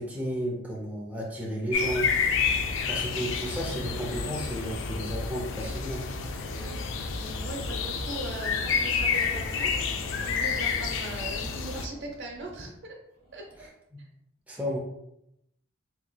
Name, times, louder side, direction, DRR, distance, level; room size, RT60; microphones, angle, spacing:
voice 1, 0.0-2.1 2.9-6.1 13.6-14.0 14.5-14.8, equal, 5° right, -3 dB, 0.5 m, -33 dB
sound 1, 1.7-11.9, left 5 dB, 65° left, 0.4 m, -29 dB
voice 2, 6.5-13.0 13.3-13.5 14.0-14.1, right 2 dB, 60° right, 0 dB, 0.8 m, -40 dB
sound 2, 7.1-12.8 13.1-13.7, equal, 45° left, 1.1 m, -51 dB
4.3 x 2.9 x 2.2 m, 0.81 s
head